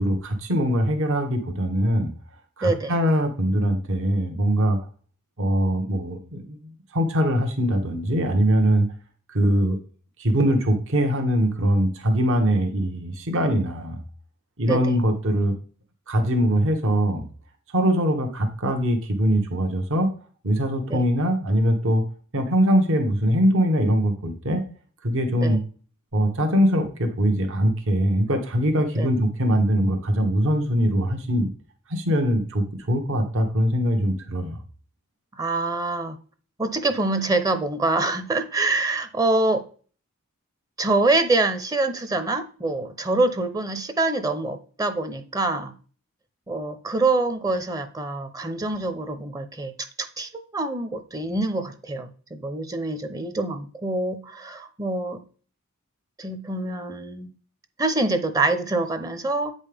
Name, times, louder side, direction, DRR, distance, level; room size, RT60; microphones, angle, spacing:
voice 1, 0.0-2.1 2.6-4.8 5.4-8.9 9.3-9.8 10.2-14.0 14.6-15.5 16.1-17.2 17.7-20.1 20.4-22.0 22.3-24.6 25.0-25.6 26.1-31.5 31.9-34.6, equal, 60° right, 5 dB, 1.1 m, -22 dB
voice 2, 2.6-2.9 14.7-14.9 20.9-21.0 25.4-25.6 29.0-29.1 35.3-36.2 36.6-39.6 40.8-45.7 46.5-49.7 50.0-55.2 56.2-57.3 57.8-59.5, right 2 dB, 15° right, 10 dB, 0.6 m, -25 dB
8.5 x 5.3 x 3.4 m, 0.41 s
head